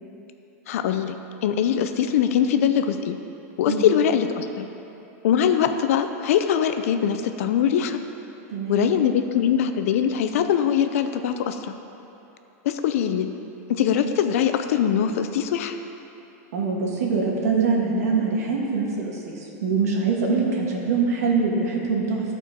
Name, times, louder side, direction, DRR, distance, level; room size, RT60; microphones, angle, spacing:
voice 1, 0.7-3.2 3.6-4.7 5.2-8.0 8.7-11.7 12.6-13.3 13.7-15.8 20.3-20.7, left 8 dB, 65° left, 8 dB, 0.5 m, -22 dB
voice 2, 8.5-8.9 16.5-22.2, right 4 dB, 90° right, -2 dB, 1.7 m, -24 dB
13.5 x 4.5 x 4.5 m, 2.9 s
supercardioid pair, 170°, 8 cm